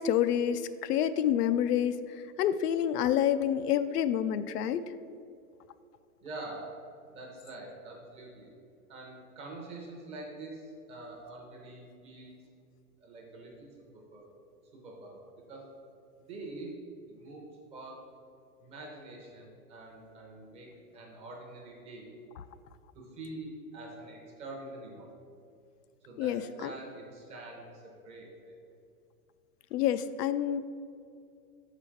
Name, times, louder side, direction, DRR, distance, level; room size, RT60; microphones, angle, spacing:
voice 1, 0.0-4.9 26.2-26.7 29.7-30.6, left 10 dB, 90° left, 12 dB, 0.5 m, -28 dB
voice 2, 6.2-6.8 7.1-8.5 8.9-12.4 13.0-14.4 14.7-15.7 16.2-16.7 17.1-17.5 17.7-18.1 18.6-22.1 22.9-25.1 26.0-28.6, right 2 dB, 15° right, -1 dB, 0.6 m, -45 dB
5.4 x 5.0 x 5.6 m, 2.4 s
supercardioid pair, 155°, 46 cm